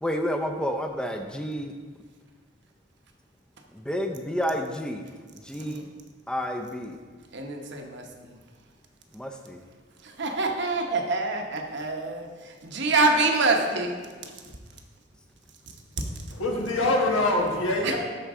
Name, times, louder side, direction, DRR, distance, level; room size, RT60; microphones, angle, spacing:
voice 1, 0.0-1.7 3.7-5.1 5.4-5.9 6.3-7.0 9.1-9.6, equal, 5° left, 4 dB, 0.5 m, -30 dB
voice 2, 7.3-8.4 10.0-14.0 14.2-14.5 16.0-16.1 17.8-17.9, right 3 dB, 60° right, 3 dB, 1.0 m, -26 dB
voice 3, 16.3-18.0, left 2 dB, 90° left, 0 dB, 1.4 m, -24 dB
12.5 x 4.6 x 3.7 m, 1.5 s
head